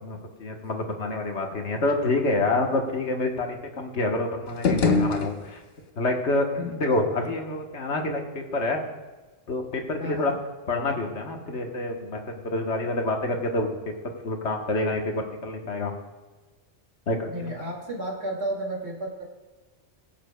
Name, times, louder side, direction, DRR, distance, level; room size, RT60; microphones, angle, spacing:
voice 1, 0.0-5.6 6.0-8.8 9.5-10.3 10.7-13.7 14.0-15.9 17.1-17.6, left 2 dB, 75° left, 3 dB, 1.5 m, -27 dB
sound 1, 4.5-5.9, left 4 dB, 60° left, 1.1 m, -25 dB
voice 2, 10.0-10.4 17.2-19.2, right 1 dB, 70° right, -2 dB, 2.5 m, -32 dB
22.0 x 7.4 x 2.2 m, 1.3 s
omnidirectional pair, 1.2 m